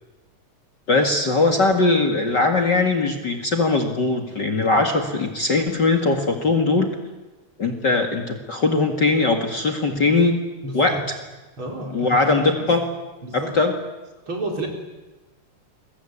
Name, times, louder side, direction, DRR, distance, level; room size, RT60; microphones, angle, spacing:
voice 1, 0.9-6.9 7.6-10.4 10.7-11.0 11.9-12.8 13.3-13.7, left 3 dB, 40° left, 3 dB, 2.4 m, -20 dB
voice 2, 10.6-11.0 11.6-12.7 13.2-13.6 14.3-14.7, right 1 dB, 40° right, 1 dB, 5.0 m, -31 dB
28.5 x 23.0 x 8.7 m, 1.1 s
omnidirectional pair, 3.4 m